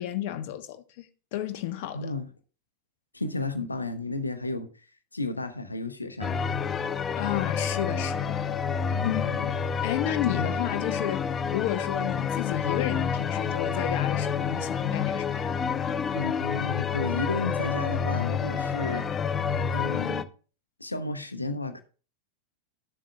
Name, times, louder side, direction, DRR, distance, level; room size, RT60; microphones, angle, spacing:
voice 1, 0.0-2.1 7.1-8.6 8.9-9.2 9.8-15.5, left 12 dB, 50° left, 0.9 m, -32 dB
voice 2, 1.9-2.3 3.1-4.9 5.1-6.4 9.0-9.5 16.1-19.1 19.7-20.3 20.8-21.8, left 3 dB, 80° left, 0.9 m, -33 dB
sound 1, 6.2-20.2, left 6 dB, 20° left, 0.6 m, -29 dB
12.5 x 7.4 x 2.3 m
figure-of-eight pair, 90°, 0 cm